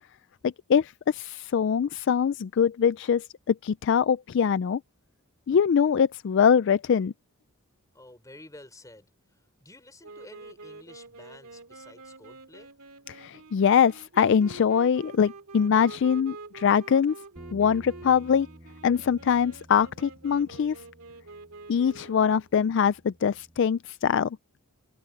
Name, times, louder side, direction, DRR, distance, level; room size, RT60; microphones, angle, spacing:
voice 1, 0.4-4.8 5.5-7.1 13.1-17.1 17.5-18.5 18.8-20.8 21.7-24.4, left 7 dB, 55° left, 0.3 m, -23 dB
voice 2, 7.9-12.7, left 2 dB, 15° left, 4.2 m, -51 dB
Wind instrument woodwind instrument, 10.0-22.5, right 3 dB, 90° right, 2.3 m, -47 dB
Bass guitar, 17.4-23.6, equal, 20° right, 2.0 m, -52 dB
head